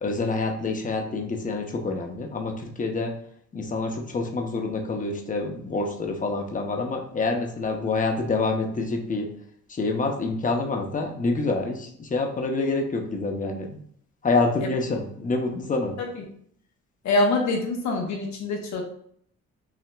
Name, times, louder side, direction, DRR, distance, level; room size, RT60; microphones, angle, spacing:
voice 1, 0.0-3.1 3.5-9.3 9.7-13.8 14.2-15.9, left 3 dB, 25° left, 3 dB, 0.7 m, -27 dB
voice 2, 17.0-18.8, left 2 dB, 70° left, 1 dB, 0.9 m, -25 dB
5.7 x 2.7 x 2.2 m, 0.63 s
cardioid pair, 90°, 30 cm